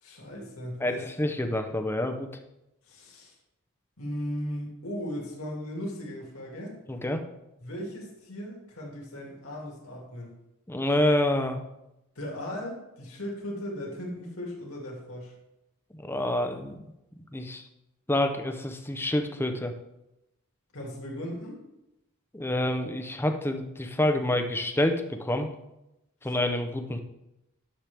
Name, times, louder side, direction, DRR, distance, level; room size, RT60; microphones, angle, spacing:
voice 1, 0.0-1.1 2.8-3.3 4.0-6.8 7.6-10.3 12.2-15.3 20.7-21.6 26.2-26.3, equal, 70° left, -3 dB, 2.5 m, -37 dB
voice 2, 0.8-2.3 6.9-7.2 10.7-11.6 16.0-16.8 17.3-17.6 18.1-19.7 22.3-25.5 26.2-27.0, left 1 dB, 10° left, 6 dB, 0.7 m, -27 dB
10.0 x 7.3 x 3.4 m, 0.89 s
head